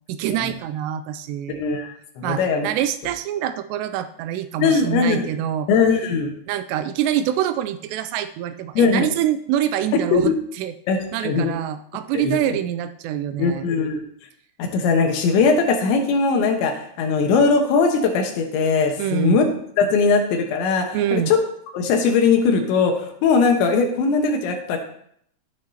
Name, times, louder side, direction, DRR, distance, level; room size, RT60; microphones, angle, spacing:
voice 1, 0.1-1.6 2.2-5.7 6.5-10.3 10.6-10.7 11.1-13.7 19.0-19.4 20.9-21.3, right 11 dB, 85° right, 11 dB, 2.6 m, -25 dB
voice 2, 1.5-2.7 4.6-5.3 5.7-6.3 8.8-9.1 10.1-10.3 10.9-11.6 12.1-12.4 13.4-14.0 14.6-19.5 19.8-21.4 21.7-24.8, left 5 dB, 85° left, 3 dB, 3.6 m, -20 dB
12.0 x 9.7 x 2.9 m, 0.68 s
omnidirectional pair, 5.1 m